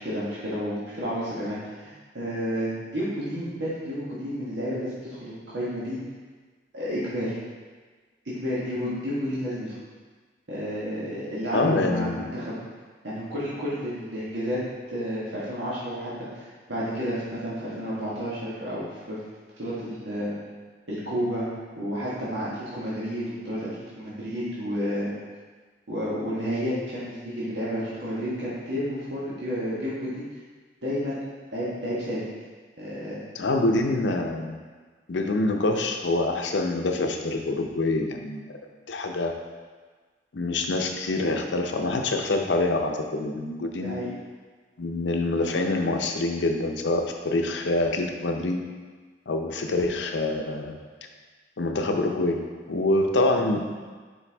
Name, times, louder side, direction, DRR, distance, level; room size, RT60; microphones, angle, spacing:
voice 1, 0.0-6.0 6.7-7.3 8.2-9.8 10.5-12.5 13.0-14.6 14.9-19.2 19.6-20.3 20.9-21.4 21.8-23.7 24.0-25.1 25.9-30.3 30.8-31.2 31.5-32.2 32.8-33.2 43.8-44.1, equal, 75° right, -9 dB, 1.4 m, -31 dB
voice 2, 11.5-12.3 33.3-34.6 35.1-38.4 38.9-39.3 40.3-43.9 44.8-48.6 49.3-50.8 51.6-52.4 52.7-53.6, left 2 dB, 85° left, 4 dB, 0.6 m, -25 dB
5.9 x 4.7 x 3.4 m, 1.4 s
head